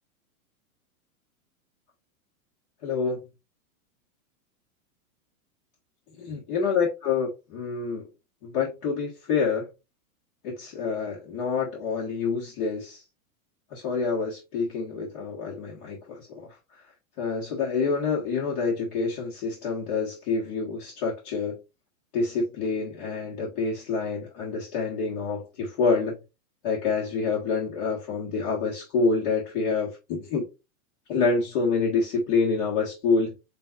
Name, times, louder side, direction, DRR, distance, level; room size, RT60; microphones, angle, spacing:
voice 1, 2.8-3.3 6.2-8.0 8.4-9.7 10.4-13.0 13.7-16.5 17.2-21.6 22.1-26.2 26.6-30.5 31.1-33.3, left 4 dB, 40° left, 1.7 m, -27 dB
7.4 x 2.7 x 2.5 m
hypercardioid pair, 145°, 44 cm